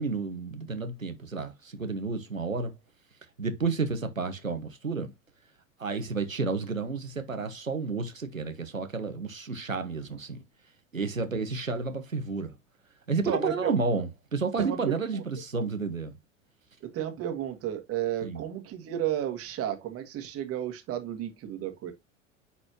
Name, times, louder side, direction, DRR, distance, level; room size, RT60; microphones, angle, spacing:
voice 1, 0.0-2.7 3.4-5.1 5.8-10.4 10.9-12.5 13.1-16.1 18.2-18.4, right 4 dB, 90° right, 1.1 m, -31 dB
voice 2, 13.2-13.8 14.6-15.2 16.9-21.9, right 11 dB, 35° right, 1.9 m, -32 dB
9.6 x 4.2 x 2.9 m
figure-of-eight pair, 80°, 39 cm